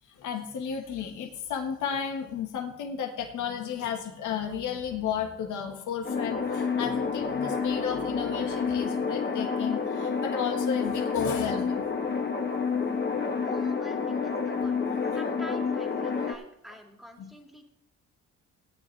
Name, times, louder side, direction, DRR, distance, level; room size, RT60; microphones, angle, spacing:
voice 1, 0.2-11.9 12.4-12.6 12.9-13.1 14.9-15.0 17.2-17.3, left 7 dB, 80° left, 3 dB, 1.7 m, -33 dB
sound 1, 6.0-16.3, left 5 dB, 35° left, 1.4 m, -29 dB
voice 2, 13.4-14.8 15.1-17.6, equal, ahead, 1 dB, 2.3 m, -46 dB
17.0 x 9.2 x 3.4 m, 0.78 s
cardioid pair, 90°, 30 cm